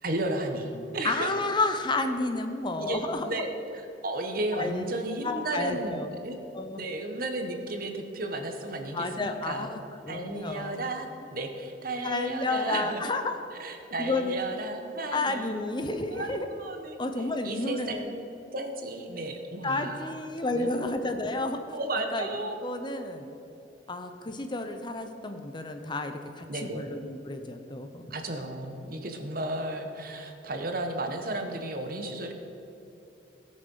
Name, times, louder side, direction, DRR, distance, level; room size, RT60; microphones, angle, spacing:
voice 1, 0.0-1.3 2.8-3.5 3.7-6.4 6.7-13.0 13.6-15.5 16.1-17.0 17.4-18.2 18.5-20.2 20.5-20.7 21.7-22.6 26.5-26.9 28.1-32.3, right 2 dB, 50° right, 5 dB, 1.2 m, -34 dB
voice 2, 1.0-3.3 4.6-4.8 5.2-6.1 6.5-6.8 8.9-10.8 12.0-13.3 14.0-14.4 15.1-16.5 17.0-18.1 19.6-21.6 22.1-22.3 22.6-23.3 23.9-26.5 26.7-28.0, left 2 dB, 25° left, 7 dB, 0.7 m, -31 dB
17.5 x 6.5 x 5.5 m, 2.9 s
head